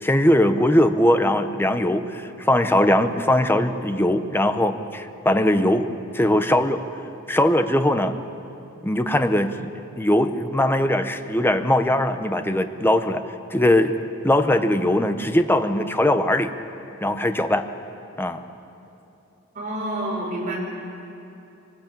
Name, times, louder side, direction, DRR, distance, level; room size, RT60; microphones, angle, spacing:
voice 1, 0.0-6.9 7.3-8.1 8.8-13.2 13.5-14.0 14.2-16.5 17.0-17.7 18.2-18.4, left 1 dB, 10° left, 8 dB, 1.0 m, -20 dB
voice 2, 19.5-20.6, right 1 dB, 40° right, -2 dB, 5.2 m, -28 dB
23.5 x 19.5 x 8.8 m, 2.8 s
head